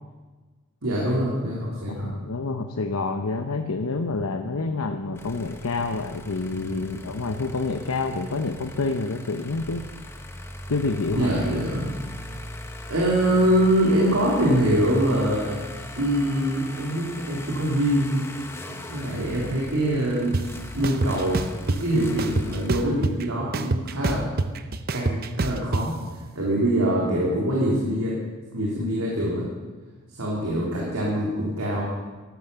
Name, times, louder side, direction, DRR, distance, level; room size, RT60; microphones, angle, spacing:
voice 1, 0.8-2.1 11.1-11.9 12.9-15.5 16.0-18.2 18.9-20.3 20.7-24.3 24.9-25.9 26.3-28.1 28.5-29.4 30.2-31.8, right 1 dB, 80° right, -4 dB, 3.3 m, -24 dB
voice 2, 1.9-9.9 10.7-11.3, left 3 dB, 90° left, 5 dB, 0.9 m, -28 dB
sound 1, 5.1-22.7, left 1 dB, 10° left, 1.0 m, -39 dB
sound 2, 20.3-20.4 20.8-21.8 22.2-23.2 23.5-25.8, right 3 dB, 45° right, 0.7 m, -25 dB
14.0 x 12.5 x 6.9 m, 1.3 s
head